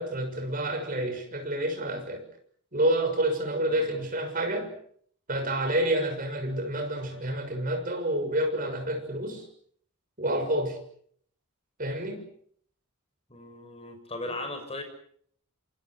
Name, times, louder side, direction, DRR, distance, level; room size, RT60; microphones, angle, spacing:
voice 1, 0.0-2.2 2.7-4.7 5.3-9.4 10.2-10.8 11.8-12.2 14.2-14.4, right 1 dB, 40° right, 5 dB, 6.7 m, -28 dB
voice 2, 3.6-3.9 13.3-14.8, left 2 dB, 30° left, 6 dB, 6.6 m, -38 dB
27.5 x 26.5 x 6.1 m, 0.63 s
head